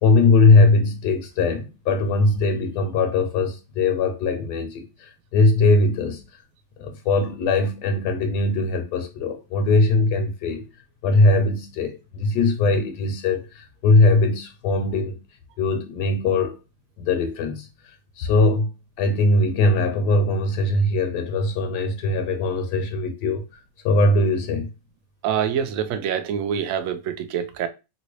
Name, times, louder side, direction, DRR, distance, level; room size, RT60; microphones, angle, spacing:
voice 1, 0.0-6.2 6.8-10.7 11.0-15.2 15.6-16.6 17.0-18.7 19.0-24.7, left 2 dB, 75° left, 1.1 m, -20 dB
voice 2, 25.2-27.7, right 8 dB, 70° right, 0.8 m, -25 dB
3.0 x 2.8 x 3.0 m
omnidirectional pair, 1.8 m